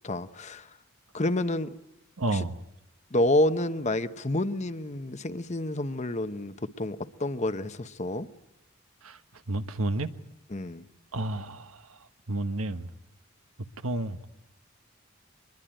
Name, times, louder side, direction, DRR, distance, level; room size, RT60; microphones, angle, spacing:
voice 1, 0.0-0.7 1.1-1.7 2.3-2.5 3.1-8.3 10.5-10.8, left 1 dB, 35° left, 0.9 m, -29 dB
voice 2, 2.2-2.6 9.0-9.2 9.5-10.1 11.1-12.0 12.3-12.9 13.8-14.2, right 2 dB, 85° right, 1.2 m, -30 dB
24.5 x 21.5 x 9.0 m
head